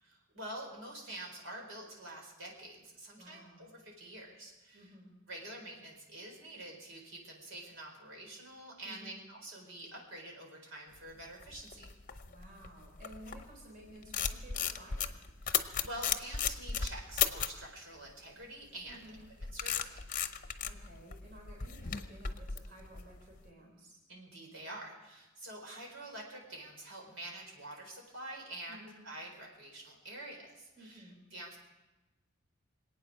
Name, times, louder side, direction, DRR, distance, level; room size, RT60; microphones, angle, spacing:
voice 1, 0.0-4.9 5.3-11.9 15.4-19.0 19.5-20.0 24.1-31.6, right 1 dB, 75° right, -1 dB, 4.5 m, -47 dB
voice 2, 3.2-3.7 4.7-5.1 8.8-9.2 12.3-15.2 18.9-19.2 20.6-24.0 28.7-29.0 30.8-31.2, right 1 dB, 45° right, -1 dB, 3.6 m, -54 dB
sound 1, 11.2-13.6 13.9-17.6 18.9-23.4, left 8 dB, 40° left, 0.8 m, -35 dB
25.0 x 9.1 x 6.3 m, 1.1 s
head